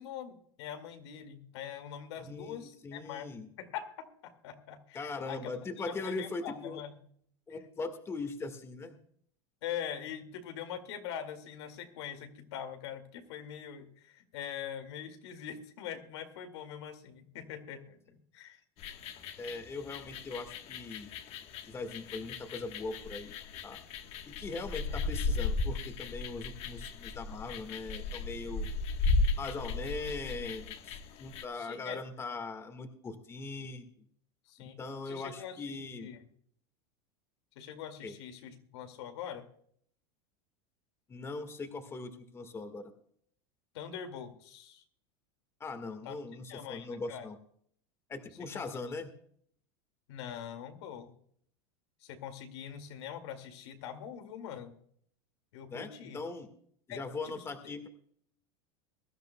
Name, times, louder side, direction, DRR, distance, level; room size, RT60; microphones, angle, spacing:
voice 1, 0.0-3.3 3.6-5.4 5.9-7.0 9.6-18.6 24.9-25.0 31.6-32.0 34.5-34.8 35.1-36.2 37.6-39.5 43.7-44.8 46.0-46.2 46.5-47.3 48.5-48.6 50.1-51.1 52.0-54.8 55.5-56.2 56.9-57.5, left 9 dB, 80° left, 6 dB, 2.2 m, -43 dB
voice 2, 2.2-3.5 4.9-6.8 7.5-9.0 19.4-21.1 21.6-23.3 23.6-23.8 24.3-28.7 29.4-33.8 34.6-36.1 38.0-38.2 41.1-42.9 45.6-47.4 48.1-49.1 55.7-56.5 56.9-57.9, left 3 dB, 20° left, 7 dB, 1.6 m, -40 dB
sound 1, 18.8-31.4, left 3 dB, 45° left, 1.3 m, -36 dB
23.0 x 12.0 x 2.3 m, 0.63 s
supercardioid pair, 135°, 14 cm